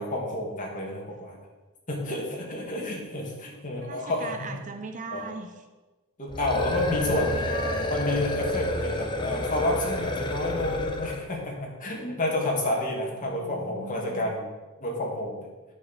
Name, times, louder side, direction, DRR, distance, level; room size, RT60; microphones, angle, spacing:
voice 1, 0.0-1.4 1.9-4.5 5.1-5.3 6.2-7.4 7.9-14.5 14.8-15.5, left 1 dB, 35° left, -1 dB, 2.0 m, -30 dB
voice 2, 3.8-5.6 6.9-7.9 8.7-9.5 13.2-14.3, right 4 dB, 35° right, 6 dB, 0.6 m, -40 dB
sound 1, 6.3-11.3, left 1 dB, 20° left, 0.8 m, -29 dB
9.6 x 4.5 x 6.9 m, 1.2 s
head